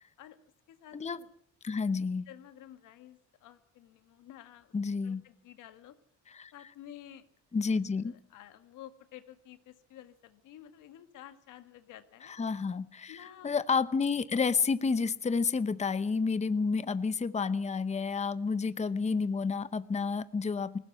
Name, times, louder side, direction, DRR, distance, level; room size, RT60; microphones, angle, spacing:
voice 1, 0.7-1.3 2.3-4.7 5.0-6.0 6.5-7.3 7.6-12.3 13.1-13.6, left 11 dB, 85° left, 1.8 m, -52 dB
voice 2, 1.6-2.3 4.7-5.2 6.3-6.5 7.5-8.1 12.3-20.8, left 5 dB, 20° left, 0.8 m, -30 dB
19.0 x 16.5 x 8.3 m
cardioid pair, 90°, 30 cm